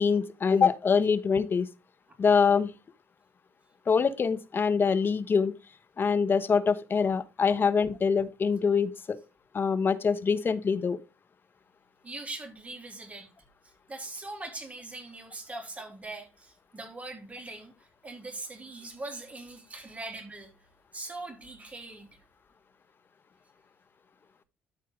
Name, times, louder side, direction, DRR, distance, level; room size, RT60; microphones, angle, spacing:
voice 1, 0.0-1.7 2.2-2.7 3.9-5.5 6.0-9.2 9.5-11.0, left 5 dB, 40° left, 1.1 m, -24 dB
voice 2, 12.0-13.3 13.6-20.5 20.9-22.1, right 2 dB, 25° right, 3.4 m, -41 dB
13.0 x 4.5 x 3.6 m
hypercardioid pair, 55°, 5 cm